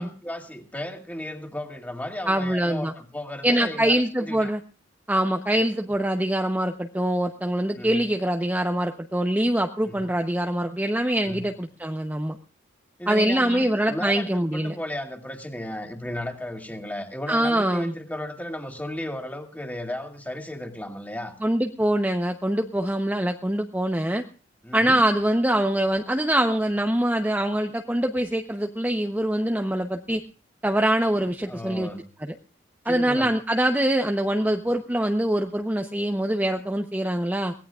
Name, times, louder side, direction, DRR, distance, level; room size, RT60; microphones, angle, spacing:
voice 1, 0.0-4.5 7.8-8.0 9.8-10.1 11.3-11.4 13.0-21.3 24.6-25.0 31.2-32.0 32.9-33.3, left 1 dB, 10° left, 3 dB, 2.4 m, -35 dB
voice 2, 2.3-2.9 3.4-4.6 5.1-12.4 13.1-14.7 17.3-17.9 21.4-24.2 24.7-30.2 30.6-31.9 32.8-37.5, right 1 dB, 10° right, 4 dB, 0.8 m, -24 dB
22.5 x 17.5 x 2.4 m, 0.38 s
head